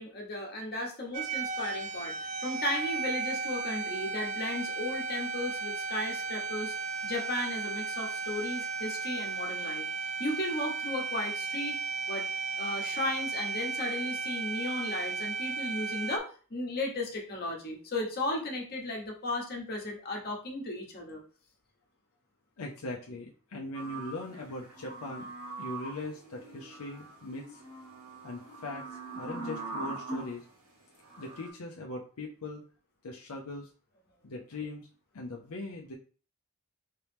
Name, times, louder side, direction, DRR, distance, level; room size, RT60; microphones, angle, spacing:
voice 1, 0.0-6.7 7.0-11.8 12.1-12.3 12.6-21.2, left 1 dB, 45° left, 0 dB, 1.0 m, -35 dB
sound 1, 1.1-16.2, right 4 dB, 35° right, 0.3 m, -35 dB
voice 2, 22.6-25.3 25.6-27.6 28.2-28.8 29.1-30.4 31.2-32.6 33.0-33.7 34.2-34.9 35.1-36.0, left 2 dB, 80° left, 0 dB, 0.6 m, -40 dB
sound 2, 23.7-30.4 31.0-31.5, right 2 dB, 85° right, 1.9 m, -42 dB
3.7 x 3.0 x 3.4 m, 0.39 s
head